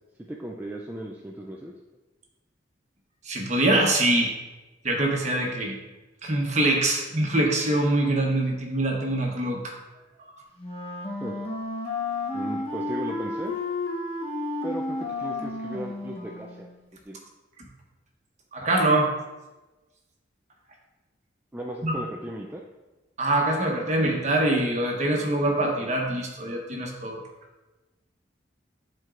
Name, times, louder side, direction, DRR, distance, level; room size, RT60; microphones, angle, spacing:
voice 1, 0.3-1.7 11.2-11.4 12.3-13.5 14.6-16.7 17.1-17.2 21.5-22.6, right 1 dB, 10° right, -1 dB, 0.3 m, -36 dB
voice 2, 3.2-4.3 4.8-5.8 6.2-9.7 18.5-19.1 21.8-21.9 23.2-27.2, right 1 dB, 40° right, 0 dB, 1.1 m, -24 dB
Wind instrument woodwind instrument, 10.6-16.8, left 2 dB, 35° left, 0.8 m, -32 dB
10.5 x 4.5 x 2.5 m, 1.1 s
head